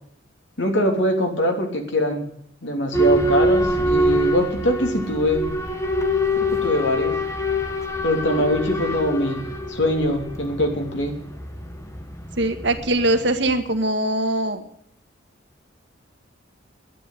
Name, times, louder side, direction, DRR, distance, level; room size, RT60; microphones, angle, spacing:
voice 1, 0.6-2.3 2.6-5.4 6.4-7.1 8.0-9.4 9.7-11.1, left 1 dB, 65° left, 3 dB, 3.2 m, -22 dB
Boat Water vehicle / Alarm, 2.9-13.6, equal, 15° left, 1.5 m, -24 dB
voice 2, 12.4-14.6, right 1 dB, 60° right, 7 dB, 1.7 m, -22 dB
10.5 x 10.5 x 9.9 m, 0.68 s
head